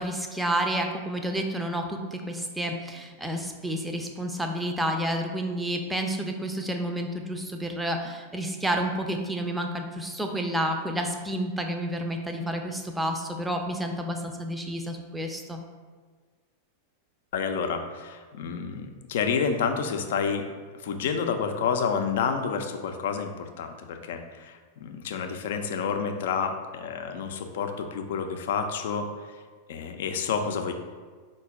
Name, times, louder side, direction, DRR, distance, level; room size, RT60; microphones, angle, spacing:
voice 1, 0.0-15.6, right 1 dB, 5° right, 4 dB, 0.5 m, -30 dB
voice 2, 17.3-20.5 20.8-29.4 29.7-30.7, left 6 dB, 55° left, 6 dB, 0.4 m, -29 dB
4.8 x 2.2 x 4.7 m, 1.5 s
figure-of-eight pair, 90°, 0 cm